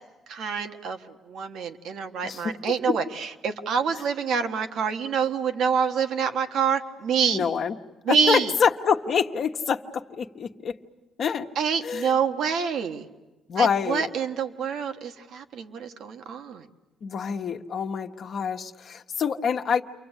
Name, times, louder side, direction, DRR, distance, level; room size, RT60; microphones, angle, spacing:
voice 1, 0.3-1.0 1.3-7.5 8.0-8.5 11.6-13.1 13.6-16.7, right 6 dB, 75° right, 6 dB, 1.5 m, -26 dB
voice 2, 2.2-2.5 7.3-7.7 8.1-10.7 11.2-11.5 11.8-12.1 13.5-14.1 17.0-19.8, left 6 dB, 60° left, 4 dB, 1.2 m, -26 dB
29.5 x 23.5 x 8.2 m, 1.1 s
cardioid pair, 90°, 0 cm